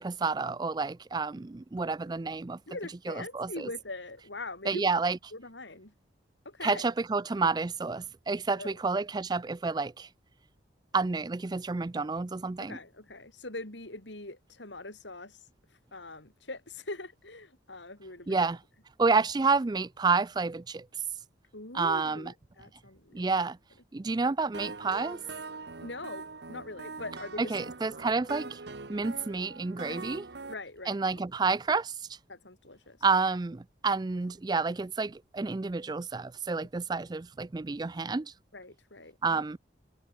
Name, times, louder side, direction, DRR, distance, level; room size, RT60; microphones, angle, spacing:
voice 1, 0.0-2.6 3.1-3.7 4.7-5.2 6.6-10.1 10.9-12.8 18.3-18.6 19.0-20.9 21.7-22.3 23.1-23.6 23.9-25.2 27.4-28.6 28.9-30.2 30.9-31.9 33.0-38.3 39.2-39.6, right 4 dB, 20° right, 0.4 m, -29 dB
voice 2, 2.7-4.9 5.3-5.9 6.5-6.9 8.6-8.8 12.6-15.4 15.9-18.5 19.1-19.2 21.5-23.3 25.8-27.6 29.9-30.0 30.5-31.0 32.3-33.0 38.5-39.4, left 2 dB, 75° left, 5.5 m, -42 dB
sound 1, 24.5-30.5, right 3 dB, 65° right, 1.1 m, -42 dB
head